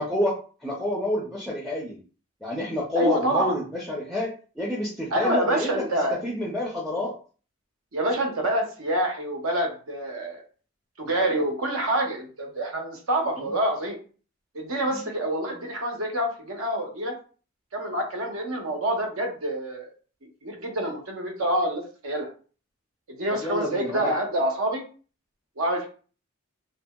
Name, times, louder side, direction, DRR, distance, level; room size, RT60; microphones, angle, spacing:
voice 1, 0.0-2.0 2.4-5.8 6.2-7.1 13.4-13.5 23.3-24.1, left 1 dB, ahead, -3 dB, 0.4 m, -28 dB
voice 2, 3.0-3.5 5.1-6.2 7.9-10.4 11.0-14.0 14.5-17.1 17.7-19.9 20.2-22.3 23.1-24.8 25.6-25.9, right 1 dB, 75° right, 2 dB, 0.7 m, -27 dB
2.7 x 2.7 x 2.2 m, 0.38 s
head